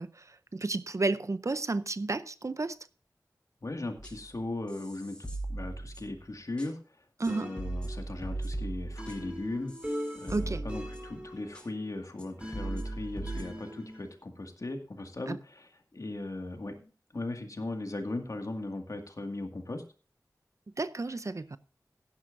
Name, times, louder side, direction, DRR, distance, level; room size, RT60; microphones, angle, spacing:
voice 1, 0.0-2.8 7.2-7.5 10.3-10.6 15.3-15.4 20.8-21.6, right 3 dB, 50° right, 0.6 m, -32 dB
voice 2, 3.6-5.2 5.5-7.0 7.2-9.7 10.1-19.8, left 2 dB, 55° left, 2.1 m, -38 dB
sound 1, 4.0-4.3 4.7-6.2 6.6-6.7 7.2-7.3 7.6-11.2 11.5-11.6 12.2-12.3 12.5-13.4, right 2 dB, 15° left, 5.1 m, -38 dB
sound 2, 7.3-14.1, equal, 15° right, 2.7 m, -43 dB
16.0 x 11.0 x 2.7 m
wide cardioid pair, 70°, 7 cm